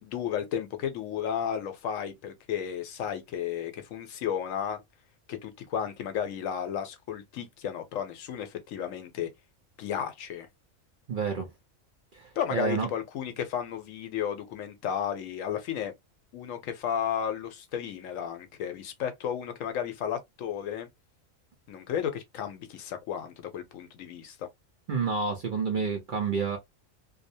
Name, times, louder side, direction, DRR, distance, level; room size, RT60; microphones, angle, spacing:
voice 1, 0.0-4.8 5.3-9.3 9.8-10.5 12.4-15.9 16.3-20.9 21.7-24.5, left 9 dB, 75° left, 1.0 m, -33 dB
voice 2, 11.1-11.5 12.1-12.9 24.9-26.6, right 5 dB, 55° right, 0.6 m, -29 dB
2.6 x 2.0 x 2.6 m
omnidirectional pair, 1.4 m